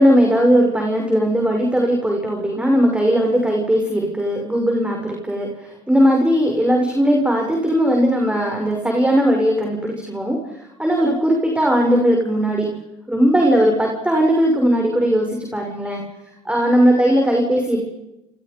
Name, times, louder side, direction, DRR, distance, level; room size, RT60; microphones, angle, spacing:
voice 1, 0.0-5.5 5.9-10.4 10.8-12.7 13.1-16.0 16.4-17.9, equal, 5° right, 1 dB, 6.3 m, -18 dB
29.0 x 29.0 x 5.4 m, 0.94 s
supercardioid pair, 65°, 16 cm